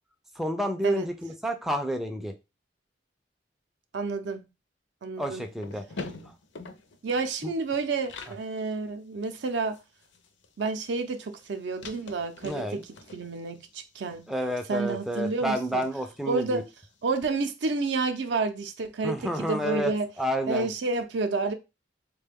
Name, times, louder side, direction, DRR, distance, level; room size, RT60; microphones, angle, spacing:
voice 1, 0.4-2.3 5.2-5.8 7.4-7.5 12.4-12.8 14.3-16.6 19.0-20.7, equal, ahead, 0.3 m, -30 dB
voice 2, 3.9-4.4 5.0-5.4 7.0-9.8 10.6-12.8 13.1-14.2 14.7-15.9 16.3-16.6 17.0-20.1 20.5-21.5, right 3 dB, 65° right, 0.5 m, -30 dB
sound 1, 5.4-8.4 8.8-8.9 9.2-17.2, left 3 dB, 75° left, 0.5 m, -46 dB
3.7 x 2.2 x 3.3 m
head